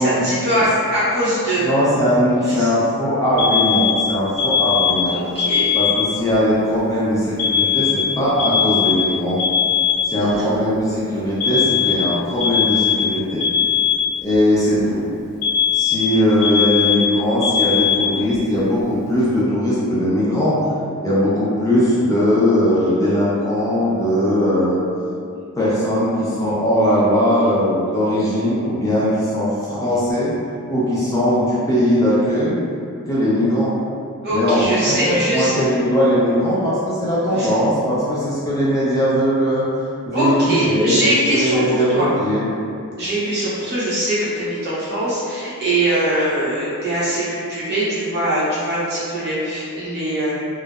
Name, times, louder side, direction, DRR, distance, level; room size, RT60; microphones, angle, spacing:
voice 1, 0.0-1.7 2.4-2.7 5.1-5.7 10.2-10.5 34.2-35.5 37.3-37.5 40.1-42.1 43.0-50.4, right 1 dB, 50° right, -10 dB, 0.9 m, -22 dB
voice 2, 1.6-5.2 5.7-9.4 10.0-13.4 14.2-15.1 15.7-20.6 21.0-24.8 25.6-30.3 30.7-32.6 33.1-33.7 34.3-39.7 40.1-40.9 41.3-42.4, equal, 15° left, -9 dB, 0.4 m, -19 dB
Alarm, 3.4-6.4 7.4-10.4 11.4-14.4 15.4-18.4, left 8 dB, 80° left, 0.4 m, -19 dB
2.6 x 2.0 x 2.3 m, 2.4 s
head